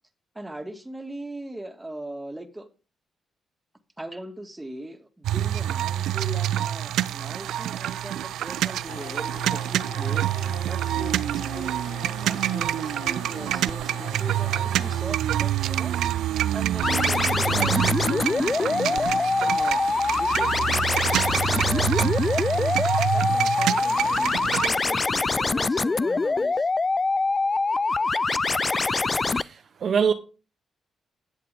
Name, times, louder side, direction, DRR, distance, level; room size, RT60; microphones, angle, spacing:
voice 1, 0.3-2.7 4.0-11.7 12.2-19.8 20.2-22.7 23.1-26.7, right 1 dB, 15° right, 2.0 m, -40 dB
sound 1, 5.2-24.7, right 12 dB, 80° right, 0.3 m, -26 dB
sound 2, 8.8-15.0, left 5 dB, 75° left, 3.1 m, -42 dB
sound 3, 16.8-29.4, left 3 dB, 35° left, 0.4 m, -24 dB
voice 2, 29.3-30.1, right 6 dB, 60° right, 0.9 m, -24 dB
11.5 x 7.7 x 3.5 m
supercardioid pair, 50°, 0 cm